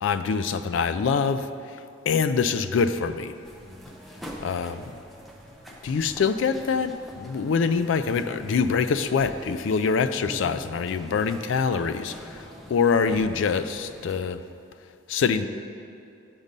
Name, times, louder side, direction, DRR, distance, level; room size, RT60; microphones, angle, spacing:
voice 1, 0.0-3.3 4.4-5.0 5.8-14.4 15.1-15.5, left 5 dB, 70° left, 11 dB, 0.3 m, -25 dB
sound 1, 3.4-14.2, equal, ahead, 0.6 m, -44 dB
7.2 x 5.3 x 5.2 m, 2.5 s
head